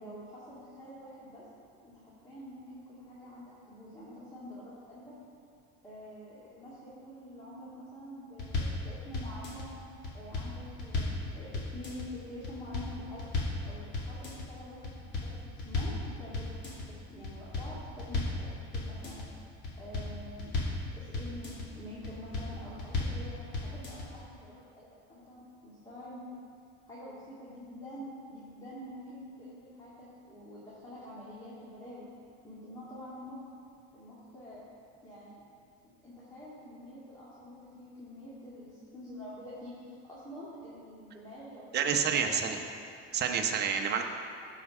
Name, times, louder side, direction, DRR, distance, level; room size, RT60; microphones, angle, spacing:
voice 1, 0.0-1.4 1.8-5.1 5.8-9.8 10.1-13.3 13.6-19.2 19.8-20.6 20.9-26.3 26.9-32.1 32.4-33.4 33.9-34.6 35.0-35.4 35.8-42.8 43.2-43.4, equal, 15° left, -9 dB, 2.2 m, -47 dB
sound 1, 8.4-8.8 9.1-9.7 10.0-11.2 11.5-12.1 12.4-12.9 13.2-13.6 13.9-14.5 14.8-16.0 16.3-16.9 17.2-18.4 18.7-19.3 19.6-20.8 21.1-21.7 22.0-22.5 22.8-23.2 23.5-24.1, left 3 dB, 35° left, 2.3 m, -34 dB
voice 2, 41.7-42.6 43.1-44.0, right 7 dB, 35° right, 4 dB, 0.9 m, -28 dB
14.0 x 4.9 x 5.4 m, 2.3 s
cardioid pair, 135°, 30 cm